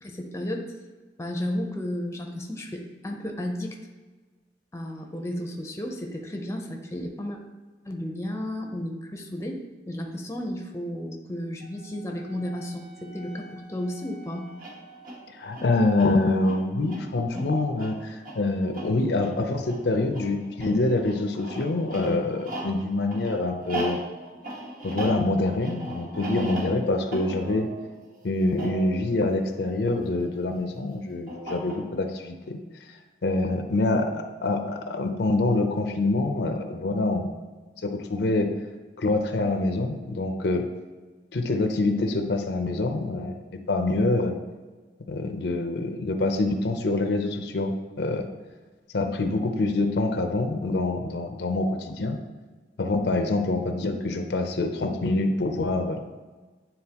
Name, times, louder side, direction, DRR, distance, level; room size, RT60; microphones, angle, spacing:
voice 1, 0.0-0.6 1.2-3.8 4.7-7.4 7.9-9.6 9.9-14.5 17.3-17.5, left 1 dB, 15° left, 2 dB, 0.6 m, -33 dB
Wind instrument woodwind instrument, 11.6-15.8, right 1 dB, 30° right, 1.4 m, -50 dB
sound 1, 14.5-30.2 31.3-32.1, right 1 dB, 55° right, 1.4 m, -38 dB
voice 2, 15.3-24.0 24.8-27.7 28.2-32.6 33.2-37.3 37.8-38.5 39.0-40.6 41.3-43.4 43.7-44.3 45.1-48.3 48.9-52.2 52.8-56.0, left 2 dB, 70° left, 5 dB, 0.6 m, -25 dB
8.8 x 3.8 x 2.9 m, 1.3 s
head